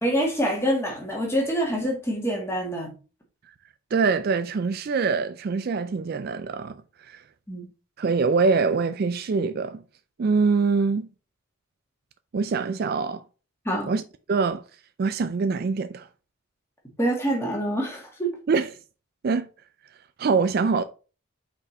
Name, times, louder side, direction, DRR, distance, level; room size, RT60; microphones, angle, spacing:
voice 1, 0.0-2.9 7.5-7.7 13.7-13.9 17.0-18.4, equal, 10° left, 2.0 m, -26 dB
voice 2, 3.9-6.8 7.1-7.2 8.0-9.8 10.2-11.1 12.3-13.2 13.9-14.0 14.3-14.6 15.0-16.1 18.5-18.7 19.2-19.5 20.2-20.8, right 4 dB, 45° right, 0.3 m, -24 dB
5.4 x 4.4 x 4.2 m
head